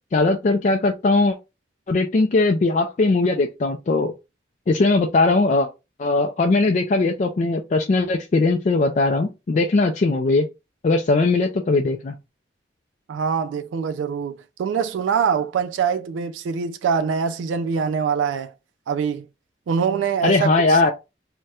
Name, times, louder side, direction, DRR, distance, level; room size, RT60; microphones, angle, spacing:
voice 1, 0.1-1.4 1.9-4.1 4.7-5.7 6.0-10.5 10.8-12.1 20.2-20.9, left 3 dB, 40° left, 0.3 m, -19 dB
voice 2, 13.1-18.5 18.9-19.3 19.7-20.8, right 6 dB, 85° right, 0.3 m, -24 dB
4.1 x 2.1 x 2.3 m
head